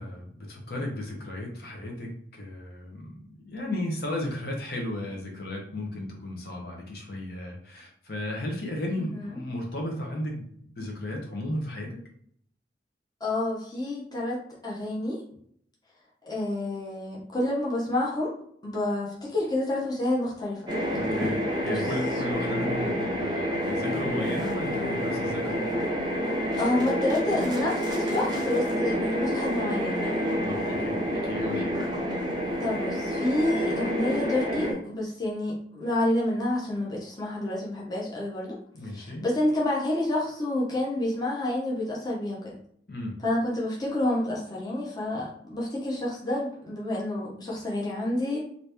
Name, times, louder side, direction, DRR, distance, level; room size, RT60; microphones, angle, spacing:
voice 1, 0.0-12.0 20.9-25.6 30.4-31.8 38.7-39.3 42.9-43.2, left 1 dB, 60° left, -1 dB, 0.8 m, -34 dB
voice 2, 9.0-9.3 13.2-15.2 16.3-18.3 18.6-20.7 21.6-21.8 26.6-30.2 32.6-38.6 38.9-42.5 43.2-48.4, left 1 dB, 20° left, -4 dB, 0.8 m, -29 dB
sound 1, 20.7-34.7, equal, 25° right, 0.7 m, -28 dB
2.9 x 2.6 x 3.4 m, 0.65 s
head